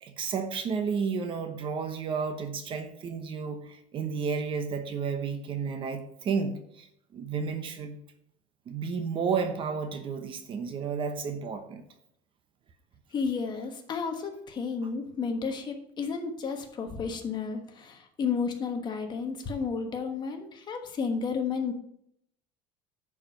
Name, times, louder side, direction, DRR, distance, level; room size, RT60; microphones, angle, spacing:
voice 1, 0.0-6.9 7.1-8.0 8.7-11.8, right 5 dB, 35° right, 8 dB, 0.9 m, -32 dB
voice 2, 13.1-21.7, left 5 dB, 30° left, 4 dB, 1.3 m, -32 dB
10.5 x 4.8 x 5.3 m, 0.74 s
cardioid pair, 145°, 15 cm